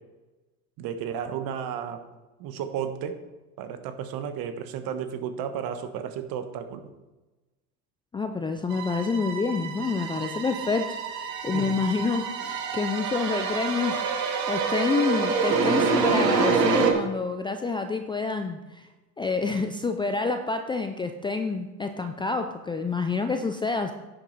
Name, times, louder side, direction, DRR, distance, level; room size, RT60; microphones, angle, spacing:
voice 1, 0.8-2.0 2.4-3.2 3.6-6.9 11.5-11.8, right 8 dB, 45° right, 8 dB, 1.3 m, -33 dB
voice 2, 8.1-10.8 11.1-18.9 19.2-23.9, left 4 dB, 10° left, 6 dB, 0.5 m, -28 dB
sound 1, 8.7-16.9, right 4 dB, 85° right, 1.8 m, -27 dB
10.5 x 7.8 x 4.1 m, 1.1 s
hypercardioid pair, 95°, 48 cm